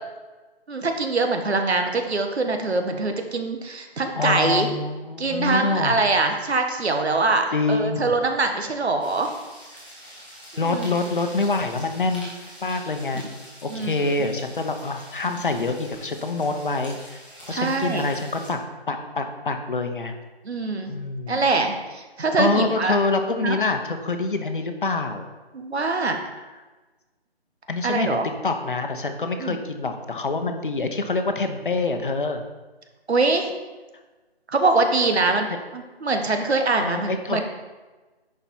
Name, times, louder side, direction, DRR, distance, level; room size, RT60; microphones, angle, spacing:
voice 1, 0.7-4.7 5.2-9.3 10.5-10.9 13.1-13.3 13.7-14.2 17.5-18.0 20.4-20.9 21.3-23.0 23.4-23.6 25.5-26.2 27.8-28.3 29.4-29.6 33.1-33.5 34.5-35.5 35.7-37.4, right 3 dB, 85° right, 5 dB, 1.3 m, -23 dB
voice 2, 4.1-6.0 7.5-8.1 10.6-12.3 12.6-13.2 13.6-17.2 17.5-18.6 18.9-20.1 20.9-21.4 22.4-25.2 27.7-32.4 35.5-35.6 36.8-37.4, left 3 dB, 55° left, 6 dB, 1.0 m, -26 dB
sound 1, 9.0-18.5, equal, 10° right, 0.8 m, -45 dB
10.5 x 4.9 x 4.3 m, 1.2 s
hypercardioid pair, 175°, 32 cm